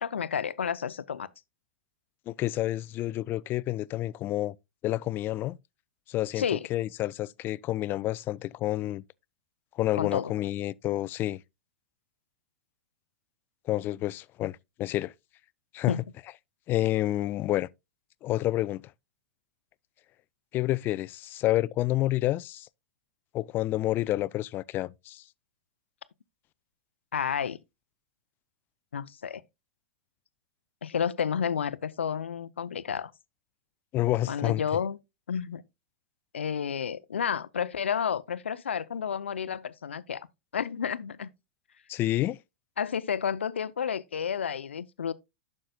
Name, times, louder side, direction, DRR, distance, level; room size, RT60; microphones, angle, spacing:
voice 1, 0.0-1.3 6.4-6.7 10.0-10.3 15.9-16.0 27.1-27.6 28.9-29.4 30.8-33.1 34.3-35.0 35.3-35.6 36.3-40.3 40.5-41.3 42.8-45.1, left 7 dB, 80° left, 0.6 m, -31 dB
voice 2, 2.3-4.5 4.8-5.6 6.1-6.4 6.7-9.0 9.8-11.4 13.7-15.1 15.7-16.0 16.7-17.7 18.2-18.8 20.5-22.7 23.3-25.2 33.9-34.6 41.9-42.4, left 15 dB, 35° left, 0.3 m, -29 dB
11.5 x 6.4 x 2.3 m
hypercardioid pair, 100°, 6 cm